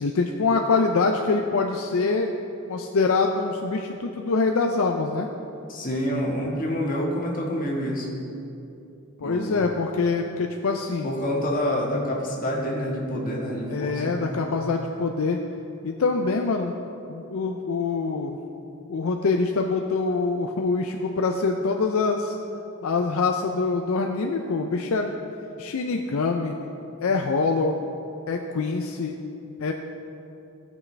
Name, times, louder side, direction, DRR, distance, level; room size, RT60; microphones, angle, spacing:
voice 1, 0.0-2.3 2.7-5.3 9.2-11.1 13.7-15.4 15.8-16.8 17.1-18.4 18.9-22.4 22.8-25.1 25.6-26.6 27.0-27.8 28.3-29.2 29.6-29.7, left 4 dB, 70° left, 3 dB, 0.5 m, -24 dB
voice 2, 5.7-8.2 9.2-9.6 11.0-14.4, equal, 40° left, -2 dB, 1.6 m, -27 dB
16.0 x 6.3 x 3.3 m, 2.8 s
head